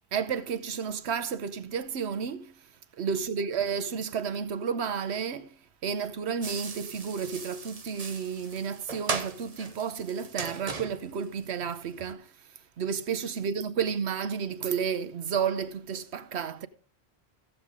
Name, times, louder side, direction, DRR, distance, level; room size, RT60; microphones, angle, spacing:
voice 1, 0.1-2.5 3.0-12.3 12.8-16.7, right 6 dB, 85° right, 1.1 m, -31 dB
sound 1, 6.4-12.1, right 4 dB, 40° right, 1.0 m, -38 dB
14.0 x 7.9 x 3.6 m
omnidirectional pair, 1.1 m